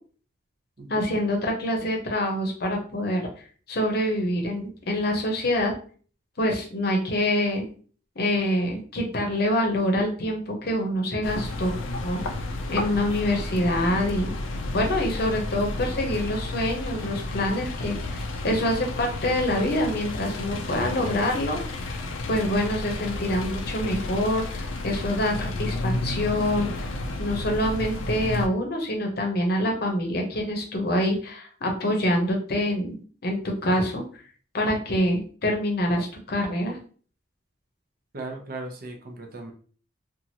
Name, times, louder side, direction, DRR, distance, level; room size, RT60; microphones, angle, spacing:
voice 1, 0.9-3.3 3.7-5.7 6.4-7.6 8.2-11.7 12.0-12.2 12.7-14.3 14.7-21.6 22.3-26.7 27.2-33.0 33.2-34.0 34.5-36.8, left 1 dB, 50° left, 1 dB, 0.7 m, -26 dB
sound 1, 11.2-28.5, left 2 dB, 80° left, 0.4 m, -32 dB
voice 2, 38.1-39.5, right 2 dB, 45° right, 2 dB, 0.6 m, -37 dB
2.9 x 2.4 x 2.7 m, 0.42 s
head